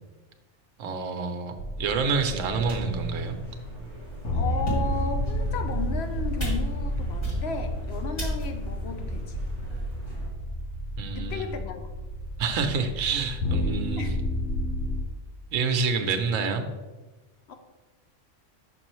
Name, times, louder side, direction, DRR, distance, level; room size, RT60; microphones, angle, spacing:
voice 1, 0.8-3.4 11.0-11.6 12.4-14.1 15.5-16.6, right 5 dB, 80° right, 6 dB, 1.0 m, -28 dB
sound 1, 1.6-15.0, equal, 75° left, 1.3 m, -31 dB
sound 2, 2.1-10.3, right 3 dB, 40° left, 2.1 m, -41 dB
sound 3, 2.7-3.0 3.7-3.8 4.5-5.1 5.7-6.1 6.4-6.9 7.2-7.7 8.2-8.7, right 2 dB, 20° left, 2.0 m, -33 dB
voice 2, 4.3-9.4 11.1-11.9 14.0-14.2 17.5-17.6, left 5 dB, 60° left, 6 dB, 0.8 m, -34 dB
6.1 x 6.1 x 3.0 m, 1.2 s
omnidirectional pair, 1.3 m